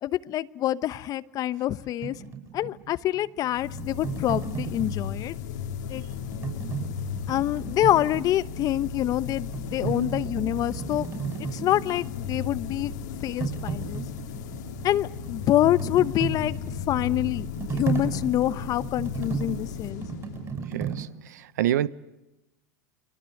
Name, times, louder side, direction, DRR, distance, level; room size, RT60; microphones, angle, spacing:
voice 1, 0.0-2.2 2.5-5.3 5.9-6.0 7.3-11.1 11.4-12.9 13.2-14.0 14.8-16.6 16.9-20.0, left 13 dB, 40° left, 0.9 m, -26 dB
sound 1, 2.0-5.5 6.1-8.9 9.3-12.5 12.8-21.0, right 6 dB, 30° right, 6.9 m, -35 dB
sound 2, 3.6-21.1, left 7 dB, 80° left, 2.4 m, -36 dB
voice 2, 20.7-21.9, right 12 dB, 80° right, 0.9 m, -28 dB
30.0 x 23.5 x 7.9 m
hypercardioid pair, 105°, 9 cm